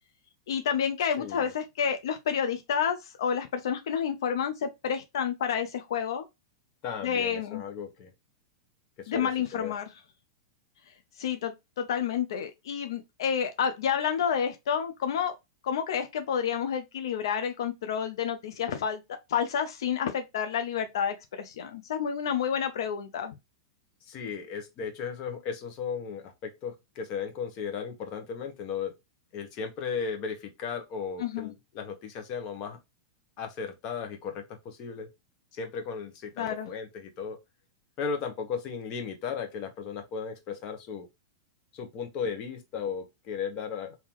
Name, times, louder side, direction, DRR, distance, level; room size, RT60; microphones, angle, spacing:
voice 1, 0.5-6.3 7.0-7.6 9.1-9.9 11.2-15.4 15.6-19.0 19.3-23.3 31.2-31.5 36.4-36.7, left 8 dB, 75° left, 0.6 m, -29 dB
voice 2, 1.2-1.5 6.8-8.1 9.0-9.7 24.0-28.9 29.3-32.8 33.4-35.1 35.5-37.4 38.0-41.1 41.7-44.0, left 6 dB, 35° left, 1.0 m, -36 dB
3.7 x 2.8 x 2.9 m
supercardioid pair, 150°, 2 cm